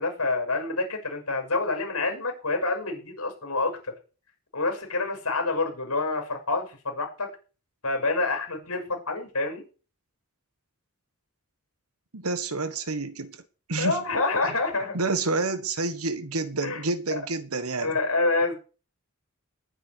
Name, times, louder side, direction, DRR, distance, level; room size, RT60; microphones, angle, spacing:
voice 1, 0.0-3.9 4.5-7.3 7.8-9.6 13.8-15.0 16.6-16.8 17.1-17.2 17.8-18.5, left 3 dB, 80° left, 6.4 m, -27 dB
voice 2, 12.1-13.4 13.7-14.0 14.4-14.5 14.9-17.9, right 3 dB, 80° right, 1.6 m, -29 dB
20.0 x 9.5 x 4.8 m
head